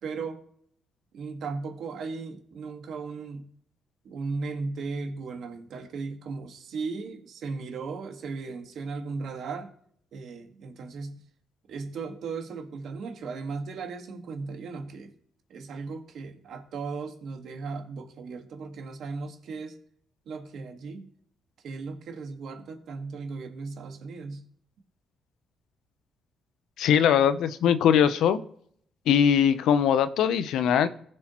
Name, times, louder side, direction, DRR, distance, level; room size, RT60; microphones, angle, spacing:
voice 1, 0.0-0.4 1.1-3.5 4.0-9.7 10.1-11.2 11.7-15.1 15.5-19.8 20.2-21.1 21.6-24.4, right 4 dB, 70° right, 1.6 m, -36 dB
voice 2, 26.8-28.4 29.1-30.9, left 8 dB, 80° left, 0.6 m, -21 dB
16.0 x 6.2 x 3.0 m
cardioid pair, 90°, 0 cm